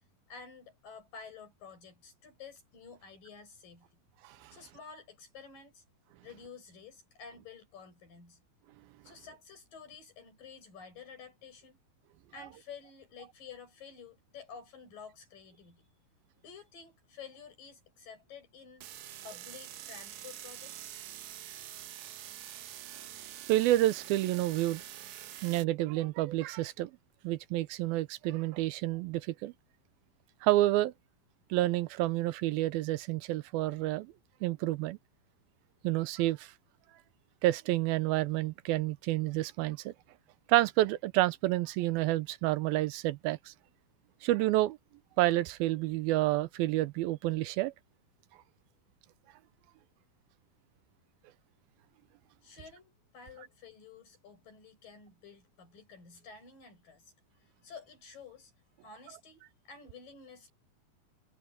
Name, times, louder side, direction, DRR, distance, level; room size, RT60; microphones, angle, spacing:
voice 1, 0.3-3.9 4.5-5.8 6.2-8.4 9.0-11.8 12.3-15.9 16.4-18.9 19.2-21.0 52.4-58.5 58.8-60.5, left 6 dB, 60° left, 9.4 m, -51 dB
sound 1, 18.8-25.7, right 12 dB, 65° right, 1.9 m, -46 dB
voice 2, 23.5-24.8 25.4-26.9 27.2-29.5 30.4-30.9 31.5-34.1 34.4-35.0 35.8-36.5 37.4-39.9 40.5-43.5 44.2-44.8 45.2-47.7, right 16 dB, 85° right, 2.5 m, -29 dB
omnidirectional pair, 4.3 m